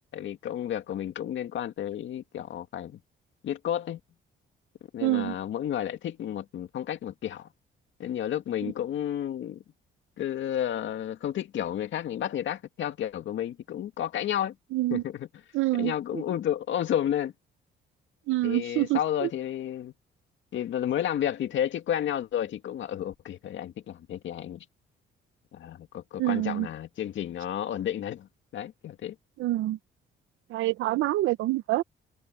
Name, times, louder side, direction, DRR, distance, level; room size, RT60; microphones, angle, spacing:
voice 1, 0.1-3.0 3.4-4.0 4.9-7.5 8.0-9.6 10.2-14.5 14.9-15.3 15.8-17.3 18.4-19.9 20.5-24.6 25.5-29.2, left 10 dB, 70° left, 2.2 m, -31 dB
voice 2, 5.0-5.4 8.6-8.7 14.7-15.0 15.5-16.2 18.3-19.3 26.2-26.7 29.4-29.8 30.5-31.8, right 16 dB, 85° right, 0.8 m, -27 dB
cardioid pair, 90°, 20 cm